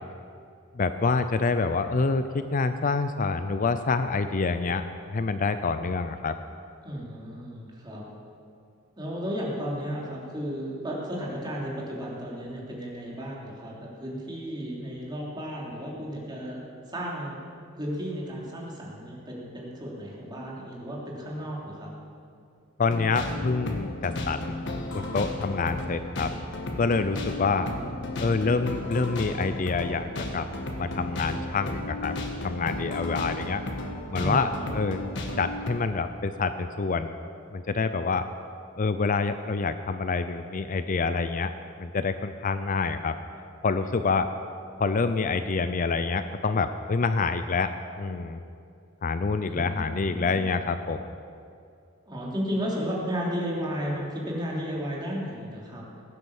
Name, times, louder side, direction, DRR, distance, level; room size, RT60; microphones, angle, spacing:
voice 1, 0.7-6.4 22.8-24.6 24.9-26.3 26.8-27.7 28.2-30.5 30.8-32.1 32.4-33.6 34.1-35.0 35.4-37.1 37.5-38.3 38.8-41.5 41.8-43.2 43.6-44.3 44.8-47.7 48.0-48.4 49.0-51.1, left 4 dB, 40° left, 10 dB, 0.5 m, -27 dB
voice 2, 6.8-8.0 9.0-16.6 16.9-17.4 17.7-21.9 27.1-27.8 34.2-34.7 49.4-50.4 52.1-55.8, equal, 20° right, -4 dB, 3.1 m, -34 dB
sound 1, 22.8-35.7, left 1 dB, 60° left, 1.6 m, -34 dB
16.5 x 9.8 x 7.1 m, 2.5 s
head